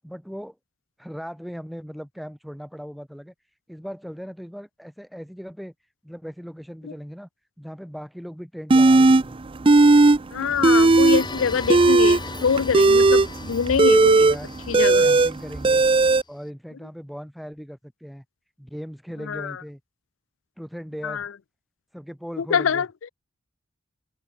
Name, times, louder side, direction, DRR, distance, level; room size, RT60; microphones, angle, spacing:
voice 1, 0.0-0.6 1.0-3.3 3.7-5.7 6.0-7.3 7.6-9.4 14.0-14.5 15.0-15.9 16.3-18.2 18.6-19.8 20.6-21.3 21.9-22.8, equal, ahead, 3.5 m, -38 dB
sound 1, 8.7-9.2 9.6-10.2 10.5-11.2 11.6-16.2, right 3 dB, 25° right, 0.5 m, -15 dB
voice 2, 10.3-14.3 14.7-15.1 19.3-19.6 21.0-21.3 22.4-23.1, left 6 dB, 75° left, 0.5 m, -24 dB
sound 2, 10.4-16.1, left 2 dB, 25° left, 4.6 m, -37 dB
head